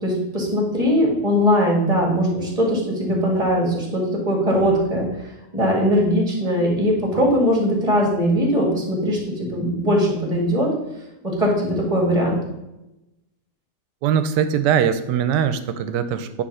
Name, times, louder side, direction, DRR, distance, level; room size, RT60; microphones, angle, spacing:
voice 1, 0.0-5.1 5.5-10.7 11.2-12.4, equal, 20° right, -1 dB, 1.9 m, -20 dB
voice 2, 14.0-16.4, right 8 dB, 80° right, 10 dB, 1.2 m, -21 dB
9.1 x 3.4 x 5.5 m, 0.94 s
omnidirectional pair, 1.9 m